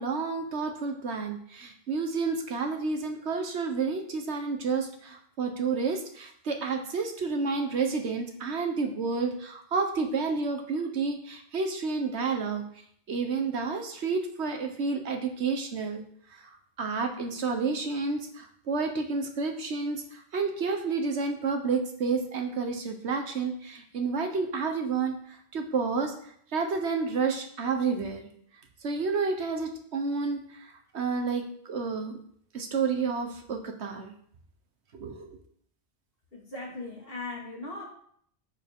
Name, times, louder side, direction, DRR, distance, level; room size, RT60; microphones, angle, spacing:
voice 1, 0.0-12.6 13.1-16.0 16.4-16.5 16.8-25.2 25.5-26.1 26.5-28.3 28.8-30.4 30.9-32.2 32.5-34.1 35.0-35.4, right 4 dB, 85° right, 4 dB, 1.4 m, -30 dB
voice 2, 36.3-37.9, left 2 dB, 60° left, -2 dB, 2.5 m, -38 dB
9.8 x 7.0 x 3.7 m, 0.63 s
omnidirectional pair, 1.1 m